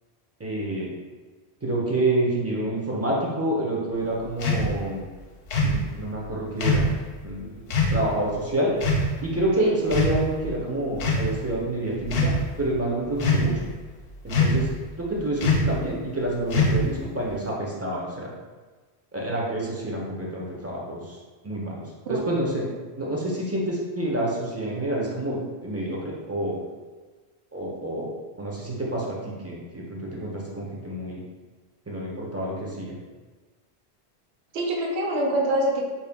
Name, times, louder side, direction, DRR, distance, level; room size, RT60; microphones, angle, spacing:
voice 1, 0.4-0.9 1.6-5.0 5.6-6.9 7.2-8.7 9.2-13.7 14.2-14.7 15.0-18.3 19.1-21.2 21.4-22.7 23.0-26.6 27.5-31.2 31.9-33.0, right 1 dB, 20° right, -4 dB, 0.5 m, -28 dB
sound 1, 4.4-4.7 5.5-5.8 6.6-6.9 7.7-8.0 8.8-9.1 9.9-10.4 11.0-11.3 12.0-12.4 13.2-13.6 14.3-14.7 15.4-15.7 16.5-17.0, left 2 dB, 70° left, 0.8 m, -22 dB
voice 2, 34.5-35.8, right 1 dB, 80° right, -2 dB, 1.0 m, -25 dB
4.1 x 2.2 x 3.4 m, 1.3 s
omnidirectional pair, 1.1 m